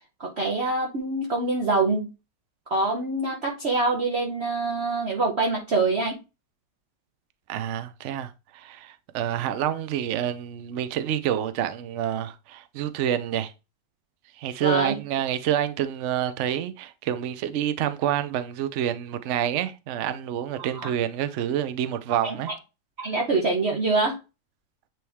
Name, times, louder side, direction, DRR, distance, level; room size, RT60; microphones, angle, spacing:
voice 1, 0.2-2.1 2.7-6.2 14.6-15.0 20.6-20.9 22.2-22.5 23.0-24.2, right 3 dB, 45° right, 1.1 m, -25 dB
voice 2, 7.5-13.5 14.4-22.5, right 10 dB, 75° right, 0.6 m, -28 dB
9.0 x 3.1 x 3.4 m
omnidirectional pair, 2.0 m